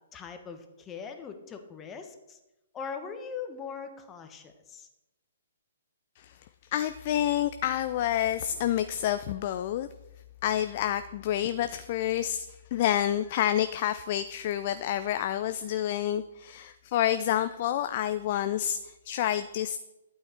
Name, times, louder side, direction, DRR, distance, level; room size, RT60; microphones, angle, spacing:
voice 1, 0.1-2.4 2.7-4.9, left 6 dB, 15° left, 7 dB, 1.3 m, -41 dB
voice 2, 6.7-9.9 10.4-19.8, left 11 dB, 40° left, 11 dB, 0.4 m, -28 dB
12.0 x 8.8 x 4.4 m, 0.98 s
figure-of-eight pair, 120°, 0 cm